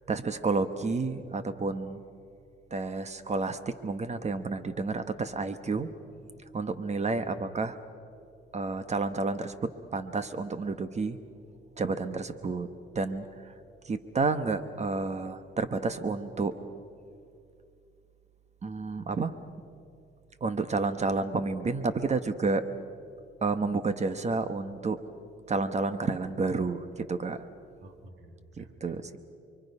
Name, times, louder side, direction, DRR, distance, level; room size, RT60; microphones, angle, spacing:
voice 1, 0.1-2.0 2.7-5.9 6.5-7.7 8.5-9.5 9.9-11.2 11.8-12.7 12.9-13.2 13.8-16.5 18.6-19.3 20.4-22.6 23.4-25.0 25.5-27.4 28.6-29.2, right 3 dB, 35° right, 10 dB, 1.3 m, -30 dB
voice 2, 27.8-29.2, right 2 dB, 75° right, 5 dB, 2.6 m, -51 dB
29.5 x 23.5 x 5.6 m, 2.4 s
cardioid pair, 90°, 20 cm